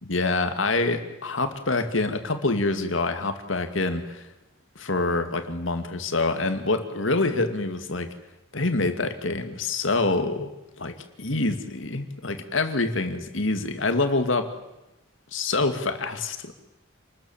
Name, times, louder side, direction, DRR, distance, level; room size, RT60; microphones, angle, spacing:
voice 1, 0.0-4.3 4.8-8.1 8.5-10.5 10.8-14.5 15.3-16.5, left 3 dB, 75° left, 7 dB, 2.4 m, -26 dB
28.0 x 20.5 x 7.4 m, 0.95 s
head